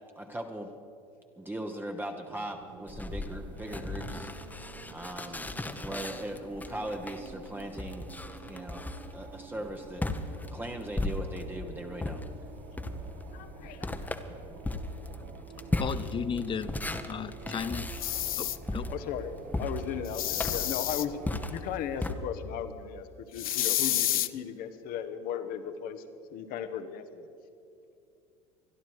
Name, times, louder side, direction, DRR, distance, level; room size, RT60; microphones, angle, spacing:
voice 1, 0.2-0.8 1.4-4.3 4.9-5.5 5.8-8.1 8.5-8.9 9.1-10.1 10.5-12.2, right 1 dB, 10° right, 3 dB, 1.2 m, -39 dB
sound 1, 2.3-21.7, right 5 dB, 50° right, 1.3 m, -49 dB
sound 2, 2.9-11.6 12.0-22.1, left 2 dB, 10° left, 1.1 m, -36 dB
voice 2, 13.3-13.9 18.9-21.2 21.5-26.0 26.3-27.3, left 8 dB, 55° left, 9 dB, 1.2 m, -36 dB
voice 3, 15.8-16.8 17.1-17.9 18.3-18.9, left 7 dB, 30° left, 15 dB, 0.6 m, -35 dB
sound 3, 17.9-18.6 20.1-21.1 23.4-24.3, left 13 dB, 85° left, 0.5 m, -29 dB
25.0 x 10.5 x 4.8 m, 2.6 s
hypercardioid pair, 80°, 17 cm